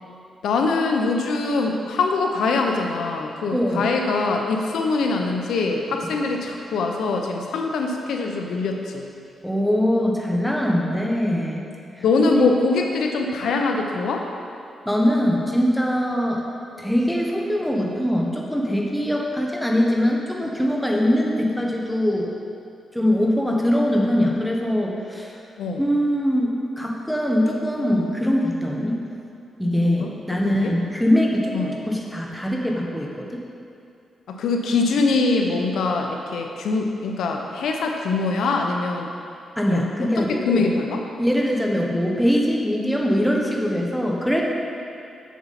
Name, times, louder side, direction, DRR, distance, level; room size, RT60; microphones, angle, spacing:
voice 1, 0.4-9.1 12.0-14.2 25.6-25.8 29.8-30.1 30.4-30.7 31.5-31.8 34.3-39.1 39.7-41.0, left 3 dB, 85° left, 2 dB, 0.7 m, -23 dB
voice 2, 3.5-3.9 6.0-6.1 9.4-11.7 12.2-12.3 14.9-16.4 16.8-22.3 22.9-25.4 25.8-29.0 29.6-33.4 39.6-40.7 41.2-44.4, equal, ahead, -1 dB, 1.1 m, -22 dB
7.3 x 7.0 x 4.1 m, 2.5 s
cardioid pair, 95°, 0 cm